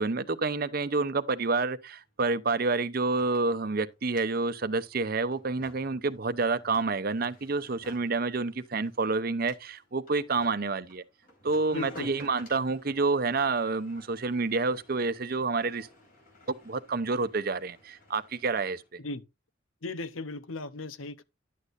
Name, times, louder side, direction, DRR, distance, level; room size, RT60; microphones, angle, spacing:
voice 1, 0.0-11.0 11.4-15.9 16.6-18.8, right 3 dB, 45° right, 0.7 m, -28 dB
sound 1, 2.0-2.1 2.3-18.9, left 1 dB, 45° left, 4.8 m, -55 dB
voice 2, 11.7-12.1 19.0-19.2 19.8-21.2, left 3 dB, 85° left, 0.9 m, -36 dB
11.0 x 8.2 x 2.6 m
head